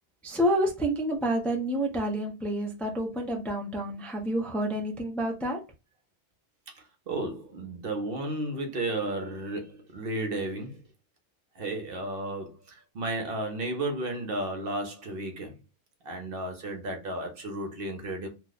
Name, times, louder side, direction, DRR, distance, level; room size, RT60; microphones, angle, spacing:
voice 1, 0.2-5.6, right 1 dB, ahead, 0.5 m, -29 dB
voice 2, 6.7-10.8 11.5-15.6 16.0-18.3, right 2 dB, 60° right, 0.9 m, -33 dB
2.9 x 2.2 x 3.9 m
omnidirectional pair, 1.1 m